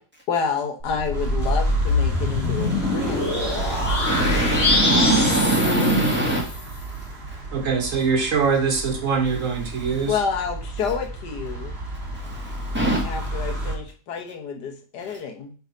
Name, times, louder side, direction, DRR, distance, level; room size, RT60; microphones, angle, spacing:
voice 1, 0.3-3.3 10.1-11.7 13.0-15.5, left 6 dB, 80° left, 4 dB, 1.6 m, -29 dB
sound 1, 0.8-6.6, left 2 dB, 50° left, 1.6 m, -24 dB
sound 2, 1.1-13.7, right 2 dB, 35° right, 2.2 m, -31 dB
voice 2, 3.6-6.5 12.3-13.1, right 1 dB, 5° right, -2 dB, 1.8 m, -22 dB
voice 3, 7.5-10.2, right 5 dB, 60° right, 5 dB, 1.1 m, -23 dB
5.4 x 4.6 x 5.0 m, 0.38 s
omnidirectional pair, 1.7 m